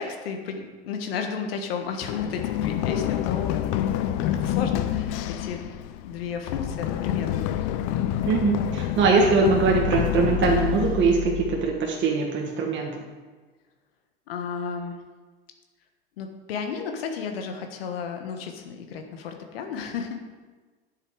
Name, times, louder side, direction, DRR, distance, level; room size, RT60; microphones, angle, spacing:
voice 1, 0.0-5.7 6.0-7.7 14.3-15.0 16.2-20.2, left 6 dB, 70° left, 4 dB, 1.4 m, -33 dB
Run, 2.0-11.8, left 11 dB, 50° left, 0.7 m, -28 dB
voice 2, 8.2-13.0, right 4 dB, 35° right, 0 dB, 1.7 m, -22 dB
10.0 x 8.0 x 4.8 m, 1.4 s
hypercardioid pair, 85°, 31 cm